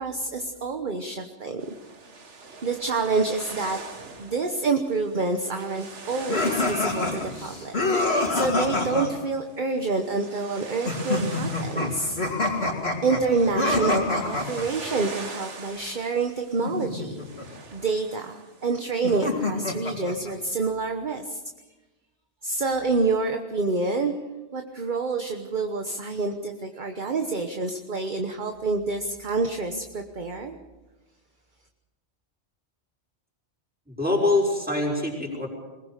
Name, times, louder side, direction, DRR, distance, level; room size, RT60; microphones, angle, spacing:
voice 1, 0.0-1.6 2.6-3.8 4.2-7.8 8.3-12.2 13.0-21.4 22.4-24.1 24.5-30.5, right 4 dB, 45° right, 5 dB, 1.3 m, -27 dB
sound 1, 1.6-19.1, right 4 dB, 80° right, 2.1 m, -43 dB
sound 2, 6.3-9.1 10.9-14.7 16.6-17.5 19.0-20.3, left 2 dB, 60° left, 3.0 m, -26 dB
voice 2, 33.9-35.5, left 2 dB, 10° right, -2 dB, 5.9 m, -24 dB
22.0 x 19.5 x 6.7 m, 1.2 s
omnidirectional pair, 1.2 m